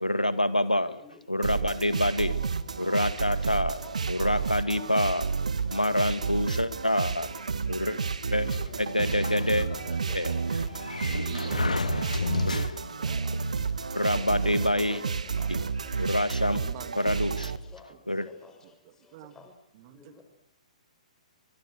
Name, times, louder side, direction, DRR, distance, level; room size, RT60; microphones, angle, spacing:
voice 1, 0.0-1.0 1.3-2.4 2.8-3.8 4.1-5.3 5.7-7.3 7.7-8.0 8.3-8.5 8.8-9.7 10.1-10.3 13.9-15.0 15.5-15.6 16.0-16.6 17.0-17.5 18.1-18.3, left 1 dB, 90° left, 13 dB, 1.8 m, -26 dB
voice 2, 1.0-1.9 3.8-4.3 4.7-5.2 7.3-7.5 7.8-7.9 8.6-8.8 9.1-9.2 9.7-10.2 10.6-10.7 11.1-11.8 12.3-12.4 13.0-13.4 14.5-14.7 15.4-15.5 17.7-17.9 18.4-18.5 19.4-19.5 20.0-20.2, left 5 dB, 10° left, 5 dB, 6.0 m, -51 dB
sound 1, 1.4-17.6, right 5 dB, 65° right, 1.7 m, -31 dB
Sliding door, 8.5-13.1, left 4 dB, 75° left, 1.6 m, -34 dB
voice 3, 11.3-12.4 14.1-15.5 16.6-17.2 17.9-18.0 18.8-19.4 19.7-20.2, right 11 dB, 35° right, 11 dB, 2.4 m, -47 dB
30.0 x 25.5 x 6.5 m, 0.71 s
figure-of-eight pair, 120°, 4 cm